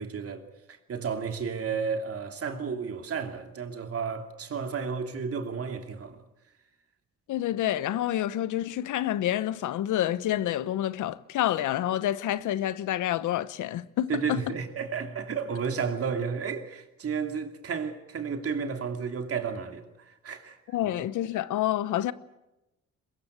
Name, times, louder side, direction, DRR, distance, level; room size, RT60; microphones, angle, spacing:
voice 1, 0.0-6.2 14.1-20.6 20.8-21.1, right 6 dB, 50° right, 2.9 m, -32 dB
voice 2, 7.3-14.4 20.7-22.1, left 12 dB, 80° left, 1.0 m, -28 dB
22.5 x 22.0 x 8.2 m
cardioid pair, 90°, 30 cm